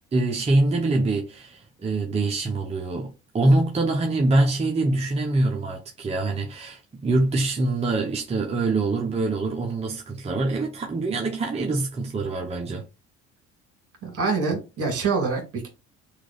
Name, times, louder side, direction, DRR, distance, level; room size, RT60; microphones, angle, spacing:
voice 1, 0.1-12.9, right 2 dB, 20° right, 0.6 m, -24 dB
voice 2, 14.0-15.7, right 4 dB, 50° right, 1.9 m, -25 dB
3.0 x 2.4 x 3.8 m
supercardioid pair, 75°, 31 cm